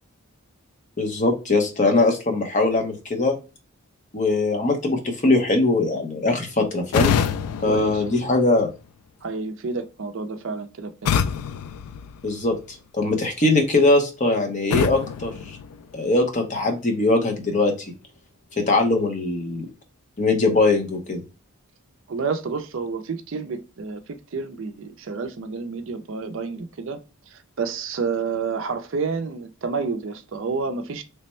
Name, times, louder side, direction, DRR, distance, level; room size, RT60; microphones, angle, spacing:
voice 1, 1.0-3.3 4.1-7.2 7.6-8.7 12.2-12.6 12.9-15.6 15.9-17.7 18.6-19.7 20.2-21.2, left 2 dB, 35° left, 0.7 m, -21 dB
sound 1, 6.9-8.9 11.0-12.8 14.7-16.3, left 7 dB, 90° left, 0.3 m, -27 dB
voice 2, 7.6-8.3 9.2-10.9 22.1-27.0 27.3-31.0, right 4 dB, 55° right, 0.4 m, -29 dB
3.3 x 2.1 x 4.2 m
head